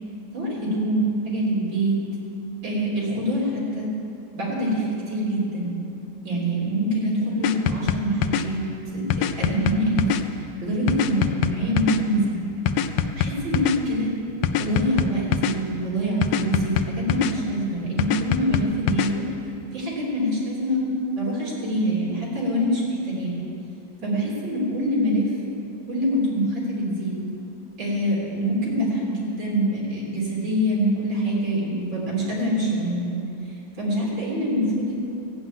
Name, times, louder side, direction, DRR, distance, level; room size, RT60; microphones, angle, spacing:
voice 1, 0.3-1.9 2.6-3.9 4.3-5.7 6.2-8.6 8.9-10.1 10.6-12.4 13.2-14.1 14.6-19.2 19.7-20.9 21.2-23.4 24.0-25.3 25.9-27.2 27.8-33.2 33.8-34.9, equal, 90° right, -5 dB, 4.1 m, -25 dB
sound 1, 7.4-8.4 9.1-10.2 10.9-12.0 12.7-13.8 14.4-15.5 16.2-17.3 18.0-19.1, left 9 dB, 90° left, 1.4 m, -23 dB
14.0 x 7.5 x 9.5 m, 2.8 s
omnidirectional pair, 2.0 m